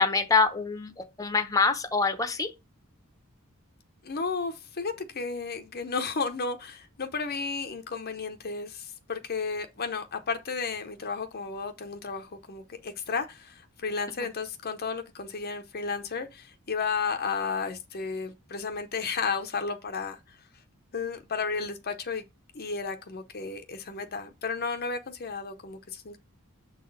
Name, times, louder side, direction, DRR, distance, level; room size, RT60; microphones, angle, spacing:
voice 1, 0.0-2.5 14.2-14.3, left 4 dB, 15° left, 0.9 m, -25 dB
voice 2, 4.0-20.2 20.9-22.2 22.5-26.2, left 5 dB, 45° left, 0.8 m, -33 dB
7.2 x 4.0 x 5.3 m
head